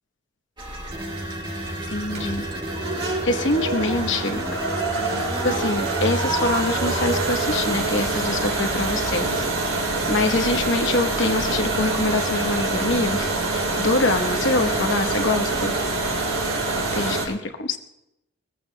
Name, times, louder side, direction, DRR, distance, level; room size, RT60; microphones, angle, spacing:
sound 1, 0.6-17.1, right 1 dB, 20° right, 1.5 m, -35 dB
sound 2, 0.7-17.3, right 2 dB, 70° right, 3.1 m, -26 dB
voice 1, 1.9-2.4 3.2-4.4 5.4-9.4 10.1-15.8 16.9-17.8, left 2 dB, 60° left, 6 dB, 1.0 m, -24 dB
22.0 x 15.0 x 2.2 m, 0.87 s
head